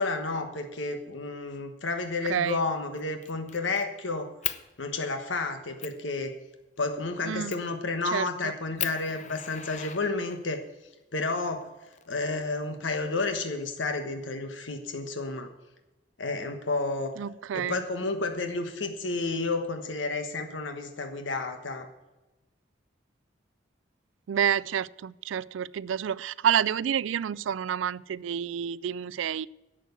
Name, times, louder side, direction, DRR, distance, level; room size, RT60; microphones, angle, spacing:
voice 1, 0.0-4.3 4.8-6.3 6.8-10.6 11.1-11.7 12.1-15.5 16.2-17.1 17.5-21.9, left 3 dB, 85° left, 1.2 m, -31 dB
Fire, 2.3-2.5 2.9-3.8 4.4-4.6 5.2-5.3 5.8-6.0 7.5-7.8 8.3-8.4 8.8-10.6 11.6-12.6, left 11 dB, 40° left, 0.7 m, -37 dB
voice 2, 2.3-2.6 7.3-7.5 8.1-8.5 17.2-17.8 24.3-29.5, right 8 dB, 90° right, 0.4 m, -29 dB
11.5 x 7.8 x 8.0 m
head